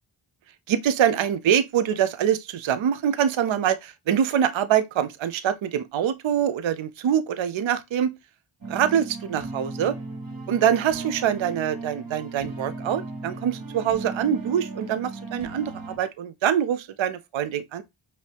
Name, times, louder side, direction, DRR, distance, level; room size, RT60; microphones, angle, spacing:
voice 1, 0.7-8.1 8.7-10.0 10.5-17.8, right 9 dB, 70° right, 0.5 m, -24 dB
sound 1, 8.6-16.0, right 3 dB, 45° right, 1.3 m, -36 dB
5.2 x 2.8 x 3.3 m
wide cardioid pair, 55°, 49 cm